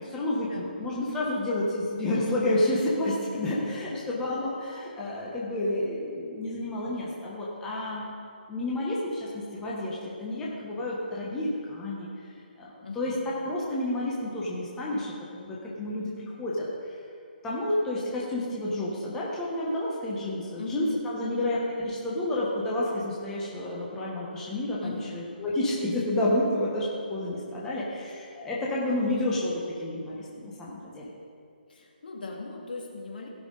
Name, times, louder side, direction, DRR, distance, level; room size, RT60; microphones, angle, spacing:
voice 1, 0.0-8.1 8.5-12.1 12.6-16.7 17.4-31.1, left 1 dB, 10° left, -6 dB, 1.1 m, -30 dB
voice 2, 12.8-13.2 20.6-21.5 24.8-25.2 31.7-33.3, left 3 dB, 60° left, 0 dB, 2.1 m, -39 dB
15.5 x 6.0 x 4.0 m, 2.4 s
hypercardioid pair, 165°, 5 cm